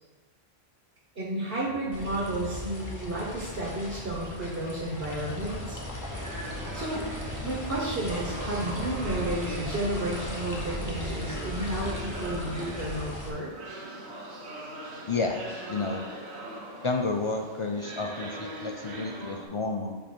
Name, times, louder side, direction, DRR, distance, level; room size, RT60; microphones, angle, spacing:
voice 1, 1.1-5.8 6.7-7.0 7.4-13.5, right 1 dB, 60° right, -4 dB, 1.5 m, -32 dB
sound 1, 1.9-13.3, left 1 dB, 20° left, 1.0 m, -37 dB
sound 2, 6.1-19.5, right 1 dB, 85° right, 1.3 m, -41 dB
voice 2, 15.1-15.4 15.7-16.0 16.8-20.0, left 3 dB, 50° left, 3 dB, 0.4 m, -30 dB
5.7 x 5.5 x 4.3 m, 1.3 s
omnidirectional pair, 1.1 m